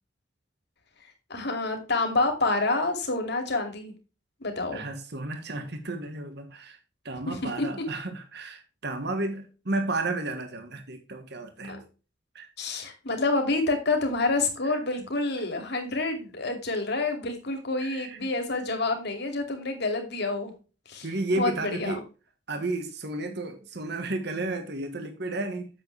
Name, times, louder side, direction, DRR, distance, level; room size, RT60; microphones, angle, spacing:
voice 1, 1.3-3.9 4.4-4.8 7.3-7.7 11.7-11.8 12.6-20.5 20.9-21.1 21.4-22.0, left 3 dB, 60° left, 2.6 m, -28 dB
voice 2, 4.7-6.8 7.0-11.9 12.3-12.5 14.7-15.1 17.8-18.3 21.0-22.0 22.5-25.7, right 2 dB, 60° right, 1.4 m, -33 dB
8.9 x 7.5 x 3.3 m
head